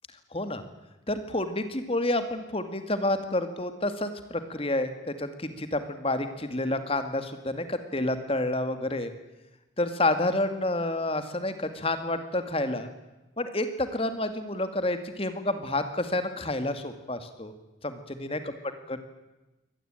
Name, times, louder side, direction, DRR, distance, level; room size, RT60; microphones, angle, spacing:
voice 1, 0.3-0.6 1.1-9.1 9.8-12.9 13.4-17.5 17.8-18.5 18.9-19.0, left 2 dB, 30° left, 9 dB, 2.2 m, -29 dB
24.0 x 18.0 x 9.0 m, 1.0 s
head